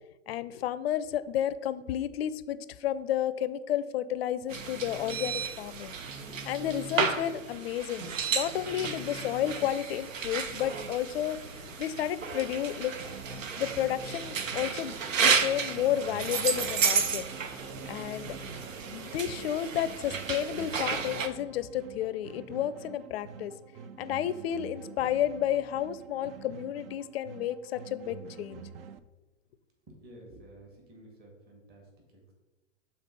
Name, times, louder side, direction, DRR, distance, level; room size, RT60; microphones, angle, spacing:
voice 1, 0.3-5.9 6.4-11.4 11.8-13.0 13.3-17.3 17.9-18.4 18.9-23.5 24.0-28.6, left 11 dB, 55° left, 15 dB, 0.5 m, -31 dB
sound 1, 4.5-21.3, right 5 dB, 80° right, 0.8 m, -32 dB
sound 2, 13.0-29.0, right 7 dB, 50° right, 0.5 m, -47 dB
voice 2, 29.9-32.3, right 1 dB, 25° right, -1 dB, 1.9 m, -52 dB
6.7 x 4.0 x 5.2 m, 1.1 s
hypercardioid pair, 115°, 38 cm